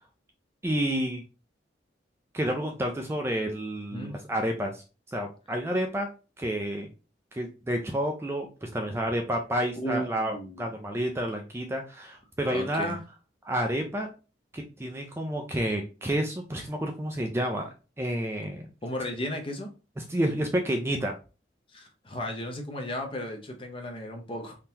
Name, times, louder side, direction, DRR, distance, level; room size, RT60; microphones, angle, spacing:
voice 1, 0.6-1.2 2.3-4.8 5.1-6.1 6.4-6.9 7.3-13.0 13.4-14.1 14.5-17.7 18.0-18.7 20.0-21.1, right 1 dB, 15° right, 0.4 m, -30 dB
voice 2, 3.9-4.2 9.8-10.8 12.5-13.0 18.8-19.7 21.7-24.6, equal, 30° left, 0.6 m, -35 dB
3.7 x 2.8 x 2.8 m
head